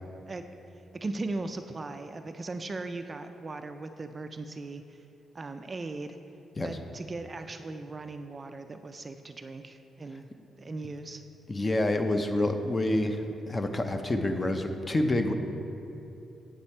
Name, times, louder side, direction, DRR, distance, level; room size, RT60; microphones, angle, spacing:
voice 1, 1.0-5.0 5.3-6.2 6.6-10.3 10.6-11.2, right 3 dB, 30° right, 7 dB, 0.3 m, -38 dB
voice 2, 11.5-13.2 13.5-15.3, left 1 dB, 20° left, 6 dB, 0.6 m, -27 dB
8.5 x 7.3 x 4.3 m, 2.8 s
cardioid pair, 125°, 0 cm